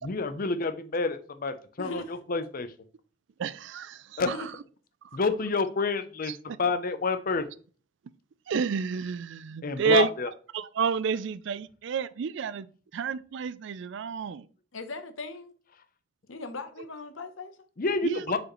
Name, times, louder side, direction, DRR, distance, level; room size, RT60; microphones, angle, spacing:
voice 1, 0.0-2.0 2.3-2.7 4.2-4.3 5.1-6.3 6.6-7.5 9.6-10.3 17.8-18.4, left 4 dB, 45° left, 0.6 m, -28 dB
voice 2, 1.8-2.1 4.2-4.5 14.7-15.5 16.3-17.6, left 3 dB, 85° left, 0.9 m, -39 dB
voice 3, 3.4-4.5 6.2-6.6 8.5-10.1 10.5-14.5 18.0-18.2, right 6 dB, 65° right, 0.4 m, -30 dB
6.2 x 5.2 x 3.1 m
head